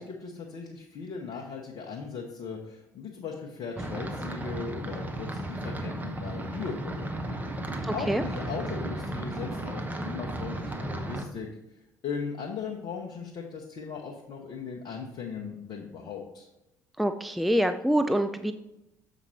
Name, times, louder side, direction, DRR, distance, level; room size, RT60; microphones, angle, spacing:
voice 1, 0.0-7.4 7.9-11.5 12.0-16.5, left 5 dB, 50° left, -1 dB, 1.0 m, -38 dB
sound 1, 3.8-11.2, right 1 dB, 20° right, 1.1 m, -34 dB
voice 2, 7.8-8.2 17.0-18.5, equal, ahead, 9 dB, 0.4 m, -26 dB
7.3 x 5.1 x 4.2 m, 0.91 s
figure-of-eight pair, 55°, 9 cm